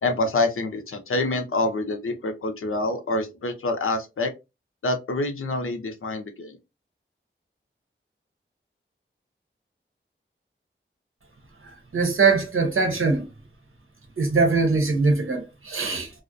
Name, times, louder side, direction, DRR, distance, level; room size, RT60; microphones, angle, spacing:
voice 1, 0.0-4.3 4.8-6.6, left 2 dB, 85° left, 0.6 m, -26 dB
voice 2, 11.6-13.3 14.2-16.1, right 4 dB, 85° right, 0.7 m, -22 dB
2.4 x 2.0 x 2.4 m
wide cardioid pair, 60°, 21 cm